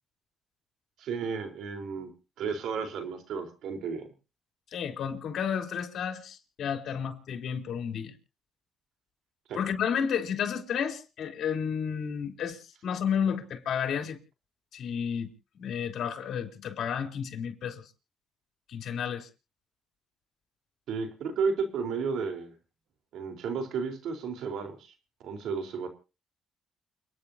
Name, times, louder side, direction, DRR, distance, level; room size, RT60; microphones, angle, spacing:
voice 1, 1.0-2.1 2.4-4.1 9.5-9.6 20.9-22.5 23.1-24.9 25.2-25.9, right 5 dB, 80° right, 4.3 m, -33 dB
voice 2, 4.7-8.1 9.5-14.2 14.7-15.3 15.6-17.8 18.7-19.3, left 7 dB, 65° left, 3.8 m, -32 dB
29.5 x 10.5 x 2.9 m
cardioid pair, 90°, 0 cm